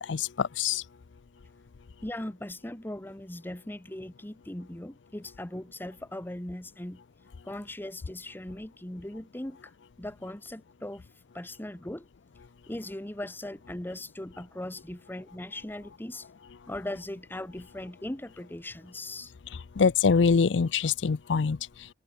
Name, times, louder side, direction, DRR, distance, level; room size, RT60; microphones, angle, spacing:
voice 1, 0.1-0.8 19.8-21.6, left 5 dB, 85° left, 0.5 m, -24 dB
voice 2, 2.0-7.0 7.4-9.7 10.0-11.1 11.3-12.0 12.7-16.3 16.7-19.3, left 1 dB, 10° left, 0.9 m, -39 dB
open air
head